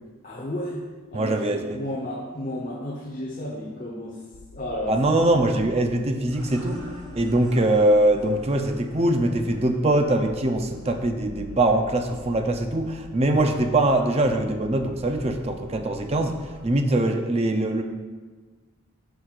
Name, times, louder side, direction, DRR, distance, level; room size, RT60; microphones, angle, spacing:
voice 1, 0.2-0.8 1.1-1.4 1.7-4.2 4.5-5.3, left 1 dB, 40° left, -3 dB, 1.0 m, -32 dB
voice 2, 1.1-1.8 4.9-6.8 7.2-16.4 16.6-17.8, right 1 dB, 30° right, 5 dB, 0.5 m, -22 dB
sound 1, 4.3-16.7, left 3 dB, 70° left, 0.5 m, -45 dB
sound 2, 6.2-11.6, equal, 90° right, 1.9 m, -46 dB
11.0 x 6.2 x 2.5 m, 1.4 s
head